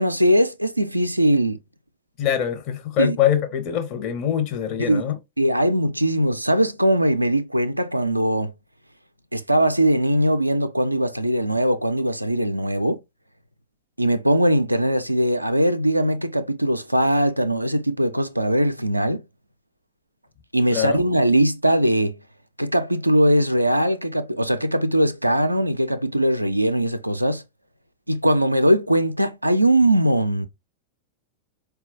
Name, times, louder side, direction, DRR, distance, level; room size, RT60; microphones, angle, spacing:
voice 1, 0.0-1.6 3.0-3.2 4.8-5.0 5.4-8.5 9.3-13.0 14.0-19.2 20.5-22.2 22.6-27.4 28.1-30.5, right 1 dB, 85° right, 0.3 m, -20 dB
voice 2, 2.2-5.2 20.7-21.0, left 10 dB, 40° left, 0.7 m, -23 dB
4.2 x 2.2 x 2.5 m
figure-of-eight pair, 90°, 0 cm